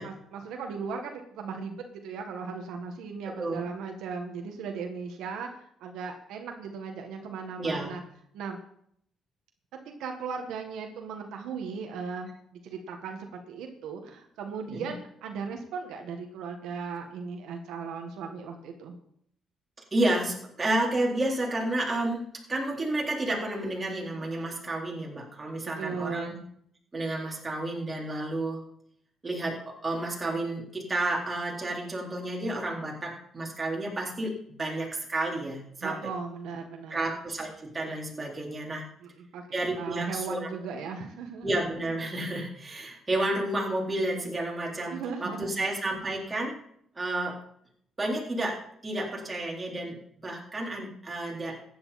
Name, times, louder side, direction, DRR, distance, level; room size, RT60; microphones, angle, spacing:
voice 1, 0.0-5.5 5.8-8.0 8.3-8.6 10.0-19.0 25.8-26.4 35.8-37.0 39.0-41.5 44.9-45.6, right 5 dB, 85° right, 3 dB, 1.7 m, -37 dB
voice 2, 7.6-7.9 14.7-14.9 19.9-22.2 22.5-26.4 26.9-28.6 29.2-36.0 36.9-38.8 39.5-40.5 41.4-46.5 47.0-47.4 48.0-50.0 50.2-51.6, right 1 dB, 25° right, -2 dB, 3.9 m, -31 dB
14.5 x 9.8 x 4.3 m, 0.68 s
cardioid pair, 100°, 0 cm